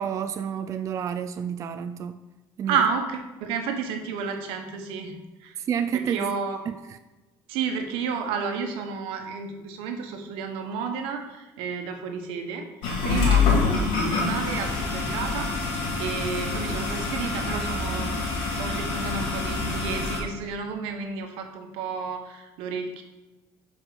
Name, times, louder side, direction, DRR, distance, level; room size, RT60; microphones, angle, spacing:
voice 1, 0.0-2.2 2.6-2.9 5.6-6.4 6.7-7.0 13.1-13.3, right 8 dB, 35° right, 9 dB, 0.3 m, -30 dB
voice 2, 2.7-5.1 5.4-5.6 6.1-6.6 7.5-12.7 13.0-23.0, right 5 dB, 85° right, 4 dB, 1.1 m, -31 dB
sound 1, 12.8-20.2, left 4 dB, 75° left, 2.5 m, -26 dB
Traffic noise roadway noise, 13.5-20.0, left 1 dB, 20° left, 0.7 m, -37 dB
6.8 x 5.2 x 4.8 m, 1.1 s
cardioid pair, 120°, 9 cm